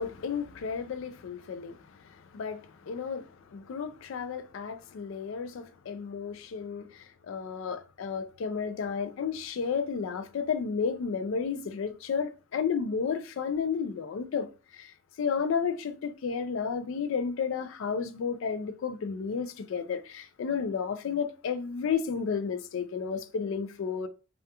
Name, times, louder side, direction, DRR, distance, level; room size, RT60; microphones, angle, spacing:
voice 1, 0.0-1.8 2.1-14.5 14.7-24.1, left 6 dB, 60° left, 0.3 m, -32 dB
2.3 x 2.2 x 2.7 m
head